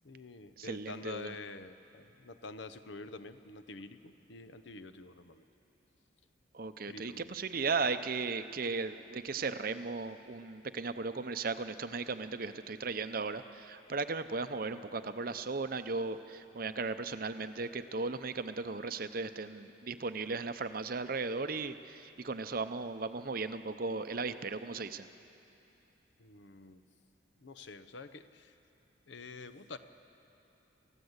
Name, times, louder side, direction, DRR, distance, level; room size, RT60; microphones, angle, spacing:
voice 1, 0.0-5.4 6.9-7.3 8.6-8.7 26.2-26.8 27.4-28.6 29.1-29.8, left 3 dB, 65° left, 11 dB, 0.8 m, -47 dB
voice 2, 0.6-1.3 6.5-25.1, right 4 dB, 45° right, 11 dB, 0.7 m, -36 dB
28.5 x 15.0 x 8.1 m, 2.9 s
head